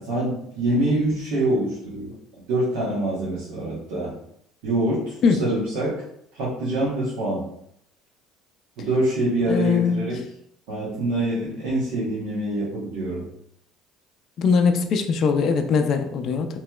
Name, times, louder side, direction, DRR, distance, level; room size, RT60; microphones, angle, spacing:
voice 1, 0.0-2.1 2.5-4.1 4.6-5.9 6.3-7.5 8.8-10.2 10.7-13.3, right 1 dB, 80° right, -9 dB, 1.1 m, -25 dB
voice 2, 9.5-10.2 14.4-16.5, left 5 dB, 50° left, 6 dB, 0.4 m, -21 dB
3.0 x 2.8 x 2.3 m, 0.72 s
supercardioid pair, 95°, 0 cm